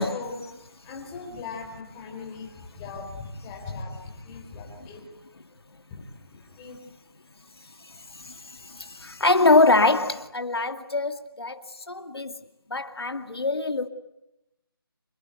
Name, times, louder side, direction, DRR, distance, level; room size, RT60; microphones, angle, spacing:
voice 1, 0.1-5.0 5.9-6.8 7.9-9.2, left 4 dB, 10° left, 4.2 m, -40 dB
voice 2, 7.6-12.3 12.7-13.9, left 3 dB, 85° left, 2.5 m, -24 dB
27.0 x 23.5 x 9.2 m
figure-of-eight pair, 170°, 13 cm